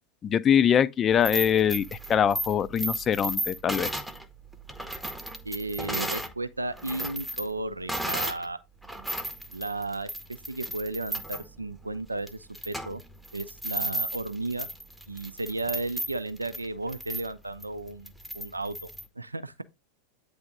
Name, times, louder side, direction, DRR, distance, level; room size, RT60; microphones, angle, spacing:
voice 1, 0.2-1.8 2.1-3.9, left 8 dB, 25° left, 0.4 m, -23 dB
sound 1, 1.1-6.3 6.7-8.5 8.8-19.1, right 1 dB, ahead, 0.8 m, -35 dB
voice 2, 5.4-8.6 9.5-13.0 13.3-14.7 15.1-18.8 19.2-19.6, right 2 dB, 80° right, 0.5 m, -34 dB
8.7 x 3.4 x 3.9 m
figure-of-eight pair, 90°, 0 cm